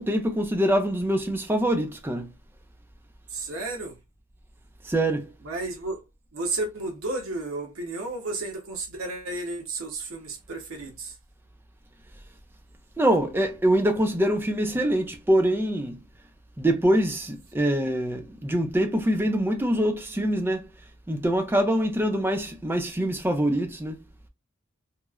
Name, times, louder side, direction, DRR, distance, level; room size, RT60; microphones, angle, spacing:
voice 1, 0.0-2.3 4.9-5.3 13.0-16.0 16.6-20.6 21.1-24.0, right 1 dB, 10° right, 0.3 m, -24 dB
voice 2, 3.3-4.0 5.4-6.0 6.3-11.2, right 2 dB, 75° right, 0.8 m, -32 dB
2.9 x 2.0 x 2.3 m
head